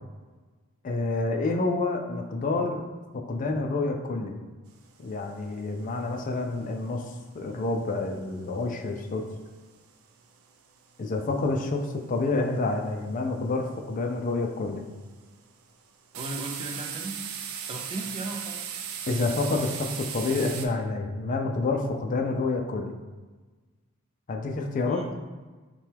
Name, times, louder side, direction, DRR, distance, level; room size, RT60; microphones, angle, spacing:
voice 1, 0.8-2.8 3.1-4.4 5.0-7.0 7.3-9.2 11.0-14.8 19.1-22.9 24.3-25.0, left 3 dB, 40° left, 3 dB, 0.4 m, -28 dB
sound 1, 4.8-5.0 5.3-5.4 5.6-6.0 6.3-7.1 7.5-8.6 9.0-10.4 10.8-11.0 11.3-11.4 11.7-12.1 12.5-12.9 13.4-13.8 14.3-14.9 15.2-15.5 16.1-20.7, right 8 dB, 85° right, 0.4 m, -37 dB
voice 2, 16.1-17.2 17.7-18.6 24.8-25.1, right 2 dB, 30° right, 2 dB, 0.5 m, -36 dB
5.8 x 2.2 x 3.3 m, 1.3 s
head